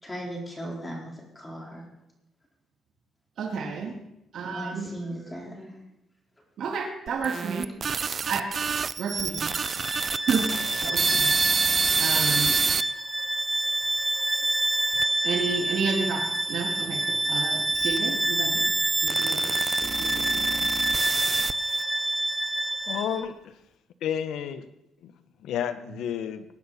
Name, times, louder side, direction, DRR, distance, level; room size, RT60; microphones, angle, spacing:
voice 1, 0.0-1.8 4.5-5.7, right 1 dB, 20° left, -1 dB, 4.2 m, -37 dB
voice 2, 3.4-3.9 4.3-4.9 6.6-7.7 8.3-8.5 9.0-9.4 10.2-11.3 12.0-12.5 15.2-18.7 19.0-20.7, right 5 dB, 70° right, 0 dB, 2.1 m, -31 dB
sound 1, 7.1-12.8 13.5-15.0 15.8-21.8, right 6 dB, 45° right, 0.5 m, -30 dB
Bowed string instrument, 9.4-23.2, right 1 dB, 10° right, 1.0 m, -27 dB
voice 3, 22.9-23.5 24.0-24.6 25.0-25.1 25.4-26.4, left 9 dB, 80° left, 11 dB, 0.9 m, -31 dB
19.0 x 9.8 x 4.2 m, 0.84 s
cardioid pair, 90°, 0 cm